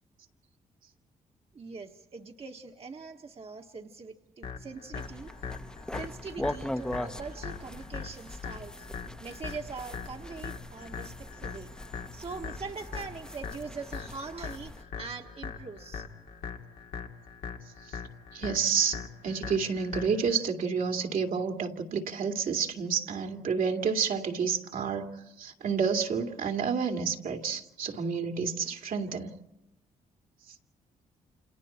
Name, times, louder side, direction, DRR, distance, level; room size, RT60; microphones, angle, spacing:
voice 1, 1.5-5.3 5.9-8.9 9.2-11.7 12.1-16.1, right 4 dB, 40° right, 3 dB, 1.6 m, -42 dB
sound 1, 4.4-20.4, left 6 dB, 85° left, 2.2 m, -41 dB
sound 2, 4.9-14.8, left 1 dB, 5° left, 1.0 m, -41 dB
voice 2, 18.3-29.4, right 6 dB, 65° right, 2 dB, 2.6 m, -30 dB
30.0 x 27.5 x 4.4 m, 0.92 s
cardioid pair, 70°, 15 cm